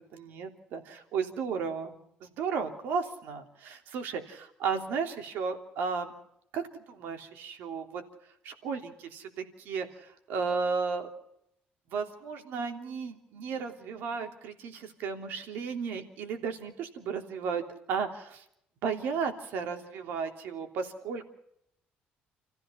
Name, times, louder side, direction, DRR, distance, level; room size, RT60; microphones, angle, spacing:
voice 1, 0.1-6.1 6.5-8.0 8.4-11.1 11.9-18.4 18.8-21.2, right 5 dB, 65° right, 5 dB, 3.2 m, -34 dB
29.0 x 15.5 x 5.8 m, 0.74 s
cardioid pair, 175°, 4 cm